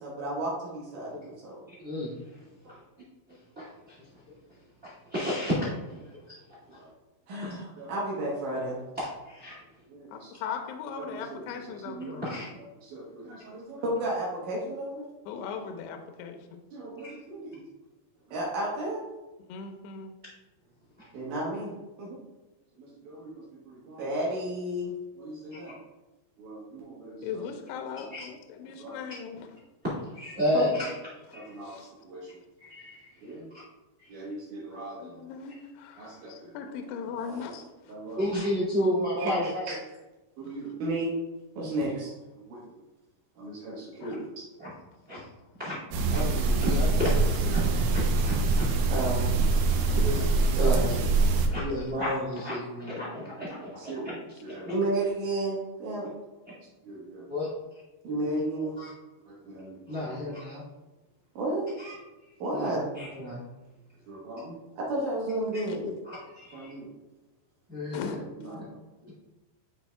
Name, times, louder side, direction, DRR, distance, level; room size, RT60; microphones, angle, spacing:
voice 1, 0.0-1.6 2.6-2.7 6.8-6.9 7.3-8.9 9.9-10.3 10.9-12.2 12.8-15.1 15.6-15.7 16.7-17.6 18.3-19.0 21.1-22.2 22.8-25.8 26.4-27.9 28.6-29.0 30.5-30.7 31.3-32.4 33.2-33.4 34.1-35.2 36.0-36.5 37.2-37.5 37.9-38.2 39.2-39.8 40.4-41.2 41.6-42.7 43.4-44.4 48.9-50.9 53.2-56.1 56.8-57.5 58.0-58.8 59.3-60.1 61.4-61.7 62.4-62.9 64.1-65.9 66.5-66.9 68.4-69.1, right 1 dB, 75° right, -4 dB, 1.9 m, -34 dB
voice 2, 3.5-4.1 4.8-5.7 5.9-6.3 6.7-6.8 9.0-9.6 12.2-12.4 17.0-17.1 21.0-21.1 28.1-28.2 30.1-30.9 31.3-31.5 32.6-33.1 34.0-34.1 38.2-39.7 44.6-44.7 45.1-45.2 45.6-45.8 46.1-48.7 50.0-50.8 51.5-54.1 57.3-57.5 58.8-58.9 59.9-60.6 61.8-61.9 62.5-62.7 63.0-63.4 66.1-66.7 67.7-68.2 68.5-68.6, left 1 dB, 40° right, -7 dB, 1.0 m, -32 dB
voice 3, 10.1-12.3 15.3-16.4 19.5-20.1 27.2-29.4 31.6-31.9 35.0-37.6 44.0-44.2 45.1-45.3 49.9-50.3 67.9-68.2, left 6 dB, 85° left, 5 dB, 2.4 m, -39 dB
sound 1, 45.9-51.5, right 3 dB, 90° right, 3.2 m, -24 dB
11.5 x 4.2 x 2.3 m, 1.1 s
omnidirectional pair, 5.4 m